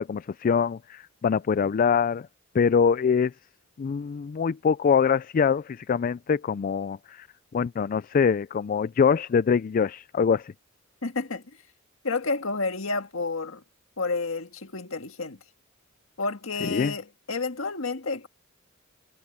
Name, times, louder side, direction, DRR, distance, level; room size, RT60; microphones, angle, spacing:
voice 1, 0.0-2.3 2.5-3.3 3.8-7.3 7.5-10.5 16.6-16.9, left 6 dB, 40° left, 0.3 m, -24 dB
voice 2, 11.0-11.4 12.0-13.6 14.0-15.4 16.2-18.3, left 3 dB, 85° left, 1.8 m, -30 dB
head